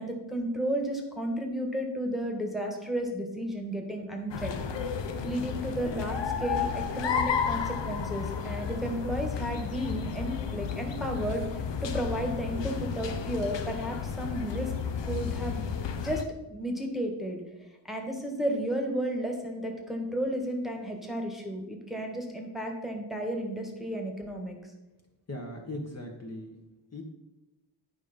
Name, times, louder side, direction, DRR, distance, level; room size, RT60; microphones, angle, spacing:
voice 1, 0.0-4.6 5.2-14.7 15.0-15.7 16.0-16.2 16.5-24.6, right 1 dB, ahead, 2 dB, 1.5 m, -33 dB
sound 1, 4.3-16.2, left 7 dB, 70° left, 0.8 m, -32 dB
voice 2, 25.3-26.6 26.9-27.0, left 1 dB, 35° left, 1 dB, 1.2 m, -38 dB
9.5 x 5.2 x 5.2 m, 1.0 s
wide cardioid pair, 95°, 45 cm